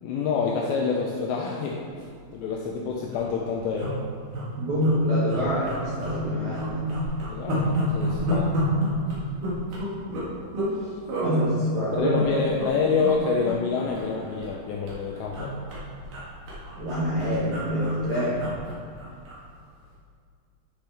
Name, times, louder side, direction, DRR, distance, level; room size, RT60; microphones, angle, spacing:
voice 1, 0.0-2.1 2.3-4.0 7.3-8.6 11.9-15.6, left 5 dB, 85° left, -2 dB, 2.5 m, -27 dB
sound 1, 2.3-2.5 2.8-2.9 3.0-3.3 3.8-4.4 4.8-4.9 5.3-6.2 6.5-10.7 11.1-11.3 11.9-12.7 13.0-13.2 13.4-14.6 14.9-19.4 19.8-19.9, equal, 55° right, 2.6 m, -30 dB
voice 2, 4.6-6.9 11.2-12.2 16.7-18.5, equal, 80° right, -8 dB, 1.6 m, -25 dB
10.0 x 5.9 x 3.4 m, 2.1 s
omnidirectional pair, 5.6 m